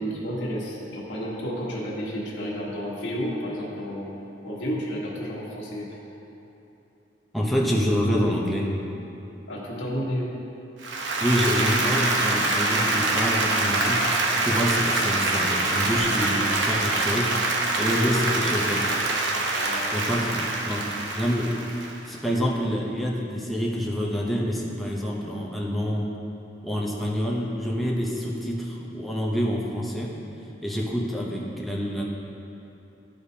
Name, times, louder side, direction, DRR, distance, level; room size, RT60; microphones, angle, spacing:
voice 1, 0.0-4.1 4.4-5.9 9.5-10.3 19.6-20.0, equal, 85° left, -6 dB, 1.4 m, -31 dB
voice 2, 7.3-8.7 11.2-14.1 14.4-18.9 19.9-20.9 21.1-26.1 26.6-30.1 30.6-32.0, equal, ahead, -3 dB, 0.7 m, -27 dB
Applause, 10.8-22.2, right 2 dB, 75° right, 0.7 m, -25 dB
11.5 x 5.0 x 2.7 m, 2.9 s
head